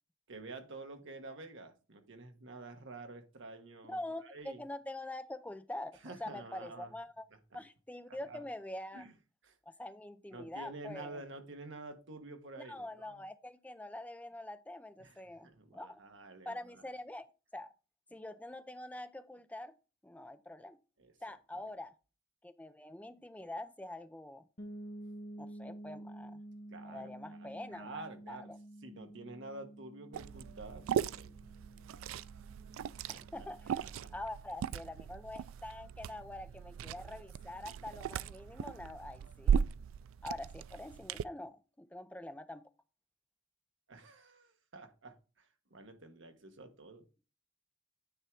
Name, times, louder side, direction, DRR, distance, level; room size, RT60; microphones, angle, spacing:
voice 1, 0.3-4.0 4.2-4.6 6.0-6.9 8.1-8.4 8.9-9.1 9.4-9.6 10.3-13.2 15.0-15.2 15.4-16.8 21.0-21.7 26.7-28.5 28.8-31.3 33.1-33.5 33.7-34.1 43.9-47.1, right 2 dB, 65° right, 1.3 m, -49 dB
voice 2, 3.9-7.3 7.5-9.0 9.7-11.2 12.7-16.0 16.5-17.3 17.5-17.7 18.1-19.7 20.0-20.8 21.2-21.9 22.4-24.5 25.4-26.4 26.8-28.6 33.1-33.8 34.1-39.6 40.2-42.7, left 1 dB, 5° left, 0.5 m, -45 dB
sound 1, 24.6-34.3, right 1 dB, 45° left, 1.3 m, -51 dB
Liquid, 30.1-41.2, right 7 dB, 85° right, 0.3 m, -38 dB
9.4 x 3.6 x 4.6 m
head